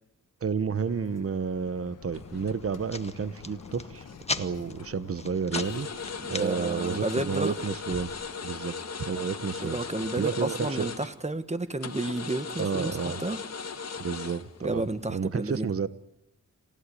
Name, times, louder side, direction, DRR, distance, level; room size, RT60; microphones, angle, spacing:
voice 1, 0.4-4.1 4.3-9.8 10.2-10.9 12.6-13.2 14.0-15.9, right 6 dB, 45° right, 15 dB, 1.0 m, -31 dB
sound 1, 0.7-7.7, left 8 dB, 80° left, 1.3 m, -48 dB
sound 2, 2.1-2.9 3.4-4.3 4.7-4.9 5.5-11.4 11.8-15.1, left 5 dB, 55° left, 2.0 m, -38 dB
sound 3, 2.1-8.3, left 2 dB, 20° left, 1.5 m, -40 dB
voice 2, 6.2-7.6 9.6-13.4 14.6-15.7, right 2 dB, 20° right, 12 dB, 1.6 m, -31 dB
28.0 x 16.5 x 10.0 m, 0.84 s
wide cardioid pair, 85°, 31 cm